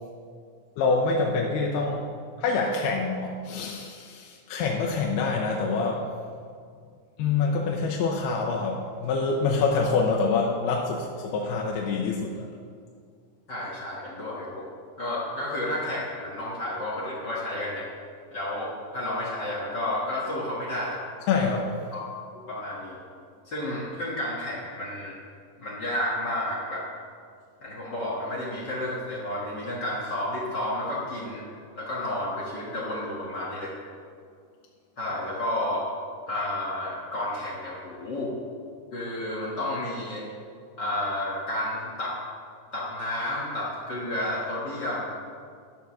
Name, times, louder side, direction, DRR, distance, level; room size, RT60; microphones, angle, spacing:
voice 1, 0.8-2.0 2.4-6.1 7.2-12.5 21.3-21.8, left 4 dB, 85° left, -1 dB, 2.7 m, -26 dB
voice 2, 13.5-14.7 15.0-17.9 18.3-21.0 21.9-22.0 22.3-23.0 23.4-25.1 25.6-26.8 27.6-31.4 31.8-33.7 35.0-35.8 36.3-38.3 38.9-40.3 40.8-42.2 42.7-45.2, left 1 dB, 65° left, -5 dB, 1.0 m, -31 dB
11.5 x 7.0 x 6.2 m, 2.2 s
omnidirectional pair, 4.6 m